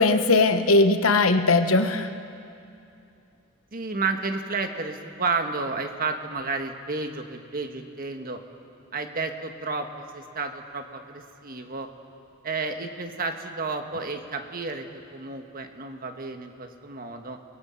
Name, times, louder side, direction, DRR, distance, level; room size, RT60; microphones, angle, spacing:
voice 1, 0.0-2.1, left 3 dB, 90° left, 8 dB, 1.2 m, -19 dB
voice 2, 3.7-8.4 8.9-11.9 12.4-17.4, right 4 dB, 45° right, 6 dB, 1.5 m, -31 dB
29.5 x 20.5 x 5.8 m, 2.6 s
head